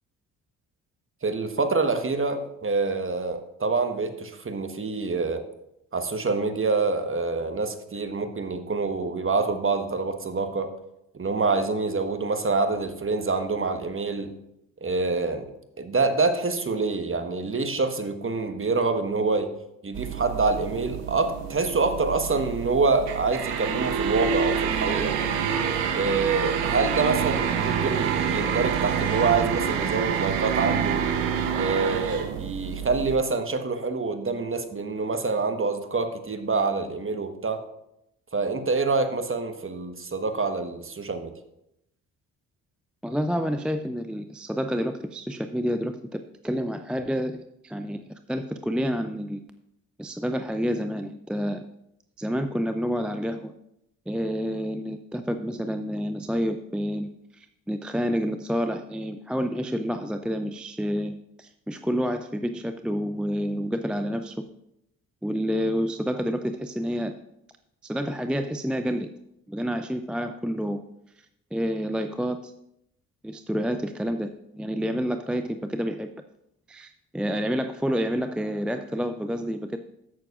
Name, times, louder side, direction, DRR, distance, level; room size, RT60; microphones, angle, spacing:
voice 1, 1.2-5.4 5.9-10.7 11.1-14.3 14.8-15.5 15.8-19.5 19.8-25.2 25.9-31.0 31.5-37.6 38.3-41.3, right 4 dB, 30° right, 8 dB, 1.3 m, -26 dB
sound 1, 19.9-33.2, right 7 dB, 80° right, 0.8 m, -27 dB
voice 2, 43.0-47.4 47.6-48.0 48.3-49.4 50.0-51.7 52.2-53.5 54.1-64.4 65.2-67.1 67.8-69.1 69.5-70.8 71.5-72.5 73.2-76.1 76.7-79.8, equal, ahead, 8 dB, 0.4 m, -29 dB
15.0 x 6.6 x 2.5 m, 0.81 s
hypercardioid pair, 45°, 42 cm